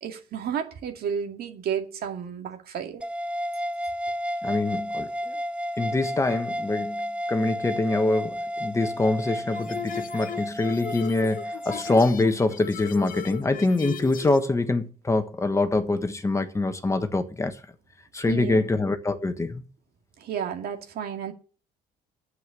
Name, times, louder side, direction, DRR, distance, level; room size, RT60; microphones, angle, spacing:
voice 1, 0.0-3.0 18.3-18.7 20.2-21.3, right 8 dB, 65° right, 2.4 m, -32 dB
sound 1, 3.0-12.0, equal, 5° right, 0.6 m, -32 dB
voice 2, 4.4-5.3 5.8-17.6 18.1-19.6, left 2 dB, 15° left, 1.4 m, -25 dB
sound 2, 9.5-14.4, left 10 dB, 55° left, 1.1 m, -37 dB
9.4 x 7.9 x 8.5 m
cardioid pair, 110°, 17 cm